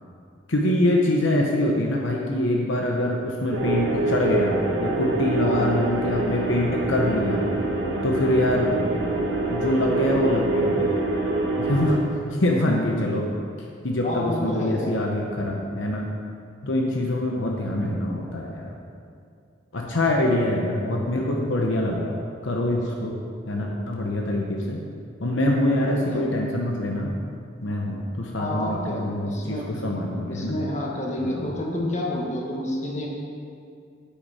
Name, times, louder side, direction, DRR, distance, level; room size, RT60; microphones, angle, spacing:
voice 1, 0.5-7.5 8.0-8.8 9.5-10.9 11.6-12.0 12.4-13.3 13.8-16.1 16.6-18.7 19.7-23.2 23.4-24.8 25.2-27.1 27.6-30.5 31.2-31.5, left 1 dB, 70° left, 0 dB, 1.0 m, -24 dB
sound 1, 3.5-12.0, right 2 dB, 70° right, 1.6 m, -25 dB
voice 2, 5.4-5.7 14.0-14.9 25.9-26.3 28.4-29.7 30.3-33.1, left 1 dB, 35° left, -2 dB, 1.5 m, -29 dB
9.1 x 8.7 x 4.9 m, 2.4 s
head